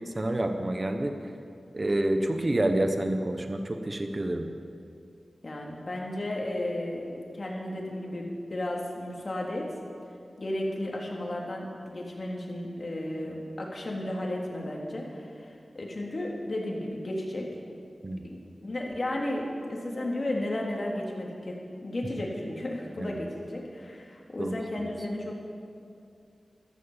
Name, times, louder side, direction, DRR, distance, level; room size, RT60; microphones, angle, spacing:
voice 1, 0.1-1.1 1.7-4.5 18.0-18.2 23.0-23.2 24.4-24.9, right 1 dB, 35° right, 6 dB, 1.2 m, -28 dB
voice 2, 5.4-9.7 10.4-17.5 18.2-25.4, left 1 dB, 50° left, -2 dB, 3.3 m, -34 dB
14.0 x 13.0 x 7.3 m, 2.4 s
wide cardioid pair, 70°, 0 cm